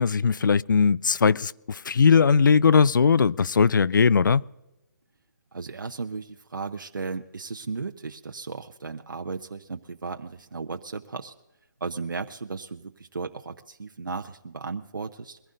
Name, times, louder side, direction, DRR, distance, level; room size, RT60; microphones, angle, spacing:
voice 1, 0.0-4.4, left 5 dB, 80° left, 0.4 m, -19 dB
voice 2, 5.5-11.3 11.8-15.4, right 4 dB, 90° right, 0.8 m, -35 dB
22.5 x 15.5 x 2.6 m
hypercardioid pair, 160°, 10 cm